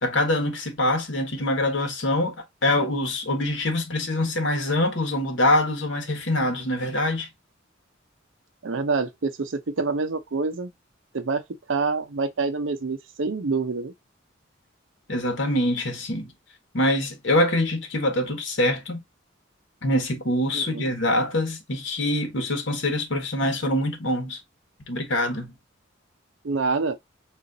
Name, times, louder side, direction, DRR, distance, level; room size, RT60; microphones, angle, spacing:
voice 1, 0.0-2.3 2.6-7.3 15.1-16.3 16.7-19.0 19.8-24.4 24.9-25.5, left 1 dB, 70° left, 1.3 m, -24 dB
voice 2, 8.6-10.7 11.1-11.4 11.7-13.9 20.5-20.9 26.4-27.0, right 4 dB, 80° right, 0.6 m, -26 dB
3.9 x 2.5 x 3.8 m
head